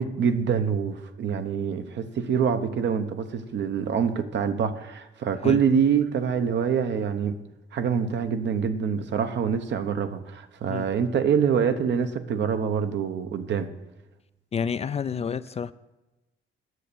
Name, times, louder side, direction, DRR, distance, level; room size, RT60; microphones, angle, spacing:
voice 1, 0.0-7.4 7.7-13.7, right 7 dB, 65° right, 9 dB, 0.9 m, -25 dB
voice 2, 14.5-15.7, left 6 dB, 30° left, 14 dB, 0.4 m, -29 dB
9.5 x 6.7 x 6.9 m, 1.1 s
cardioid pair, 90°, 20 cm